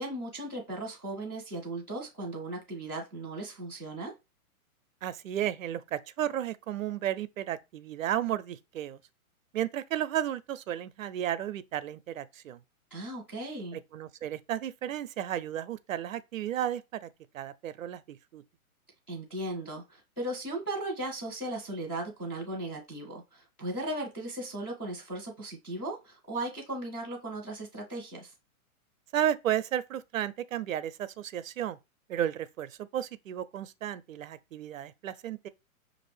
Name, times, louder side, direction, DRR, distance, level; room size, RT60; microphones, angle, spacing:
voice 1, 0.0-4.1 12.9-13.8 19.1-28.3, right 1 dB, 10° left, 0.6 m, -37 dB
voice 2, 5.0-9.0 9.5-12.6 13.7-17.1 17.3-18.4 29.1-31.8 32.1-35.5, right 11 dB, 65° right, 0.5 m, -33 dB
5.9 x 2.5 x 3.2 m
hypercardioid pair, 175°, 43 cm